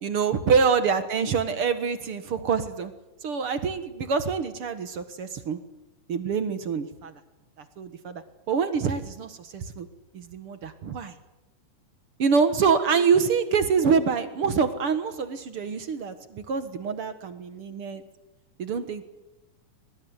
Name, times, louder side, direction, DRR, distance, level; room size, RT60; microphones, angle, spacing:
voice 1, 0.0-2.9 3.2-5.6 6.1-7.1 7.8-9.9 10.1-11.1 12.2-18.0 18.6-19.0, right 6 dB, 50° right, 10 dB, 1.9 m, -25 dB
23.0 x 20.5 x 9.6 m, 0.97 s
omnidirectional pair, 3.8 m